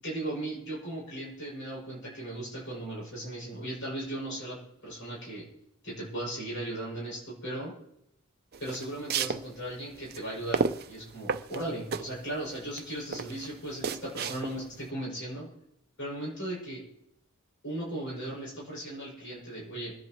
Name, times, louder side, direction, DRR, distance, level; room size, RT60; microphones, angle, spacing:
voice 1, 0.0-5.5 5.8-7.7 8.6-15.5 16.0-16.9 17.6-20.0, right 1 dB, 60° left, -5 dB, 7.1 m, -37 dB
sound 1, 8.5-14.8, right 5 dB, 50° right, 0.6 m, -33 dB
27.0 x 10.5 x 3.1 m, 0.79 s
head